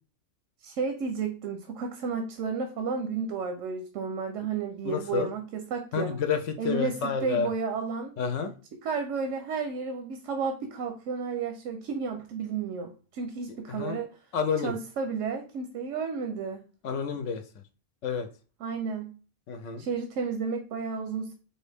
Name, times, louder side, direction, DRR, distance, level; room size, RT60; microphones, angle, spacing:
voice 1, 0.6-6.2 6.6-7.0 7.2-8.1 8.8-14.1 14.6-16.6 18.6-19.1 19.8-21.3, right 5 dB, 90° right, 6 dB, 1.0 m, -32 dB
voice 2, 4.8-5.3 5.9-7.5 8.2-8.5 13.7-14.0 14.3-14.7 16.8-17.4 18.0-18.3 19.5-19.9, left 6 dB, 80° left, 6 dB, 0.9 m, -29 dB
4.6 x 2.7 x 3.3 m, 0.38 s
omnidirectional pair, 1.3 m